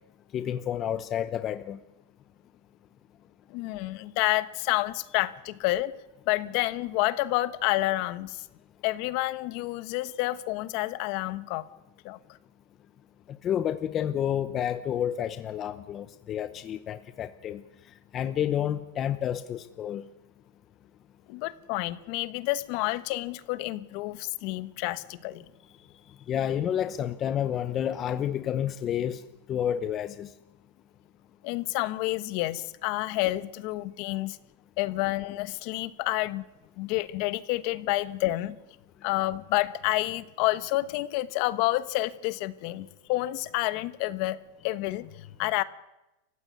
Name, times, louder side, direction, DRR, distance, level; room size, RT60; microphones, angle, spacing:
voice 1, 0.3-1.8 13.4-17.6 18.1-20.1 26.3-29.2 29.5-30.3, left 10 dB, 25° left, 12 dB, 0.9 m, -30 dB
voice 2, 3.5-5.9 6.3-8.4 8.8-11.7 12.0-12.2 21.3-25.4 31.4-34.4 34.8-36.4 36.8-38.6 39.0-44.4 44.6-45.6, left 18 dB, 50° left, 15 dB, 1.2 m, -29 dB
28.0 x 15.5 x 9.5 m, 0.96 s
supercardioid pair, 155°, 0 cm